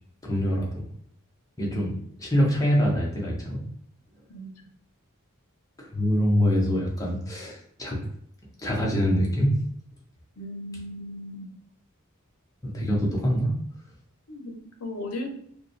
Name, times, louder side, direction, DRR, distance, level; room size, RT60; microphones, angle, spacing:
voice 1, 0.2-0.7 1.6-1.9 2.2-3.6 5.8-8.0 8.6-9.6 12.6-13.5, equal, 15° left, -3 dB, 0.9 m, -24 dB
voice 2, 10.4-11.5 14.3-15.3, left 1 dB, 85° left, 4 dB, 0.7 m, -36 dB
4.7 x 2.2 x 3.1 m, 0.66 s
head